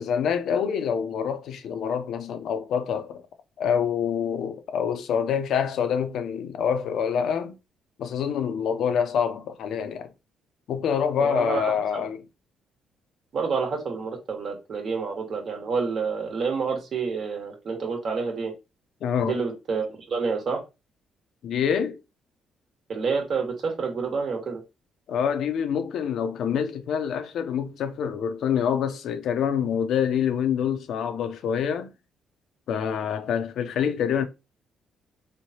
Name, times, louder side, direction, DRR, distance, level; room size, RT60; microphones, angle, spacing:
voice 1, 0.0-3.2 3.6-7.6 8.0-10.1 10.7-12.2 19.0-19.4 21.4-22.0 25.1-31.9 32.7-34.2, left 7 dB, 75° left, 0.5 m, -26 dB
voice 2, 11.2-12.0 13.3-18.5 19.2-20.6 22.9-24.6, right 5 dB, 55° right, 1.2 m, -28 dB
3.1 x 2.2 x 2.7 m
cardioid pair, 90°, 0 cm